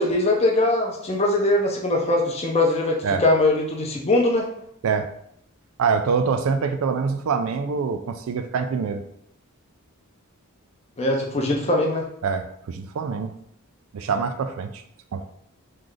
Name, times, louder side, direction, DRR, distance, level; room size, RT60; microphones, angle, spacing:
voice 1, 0.0-4.5 11.0-12.1, left 2 dB, 30° left, 0 dB, 0.6 m, -21 dB
voice 2, 5.8-9.0 12.2-13.3 13.9-14.7 15.1-15.2, right 5 dB, 65° right, 8 dB, 0.3 m, -25 dB
3.2 x 2.4 x 3.8 m, 0.70 s
head